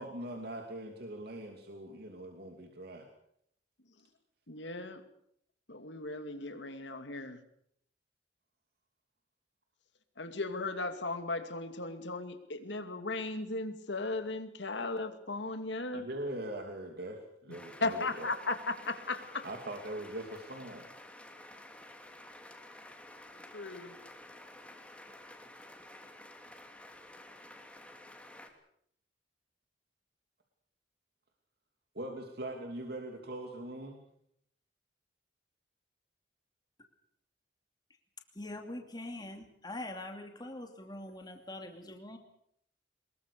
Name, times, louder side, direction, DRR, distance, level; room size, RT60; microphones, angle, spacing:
voice 1, 0.0-3.1 15.9-18.3 19.4-20.9 31.9-34.0, right 1 dB, 60° right, 3 dB, 2.9 m, -41 dB
voice 2, 4.5-5.0 5.7-7.4 10.2-16.1 17.8-19.5 23.5-23.9, left 3 dB, 90° left, 8 dB, 2.5 m, -36 dB
sound 1, 17.5-28.5, left 1 dB, 5° left, 2.9 m, -52 dB
voice 3, 38.3-42.2, left 1 dB, 25° left, 4 dB, 2.7 m, -43 dB
23.0 x 21.5 x 6.9 m, 0.71 s
head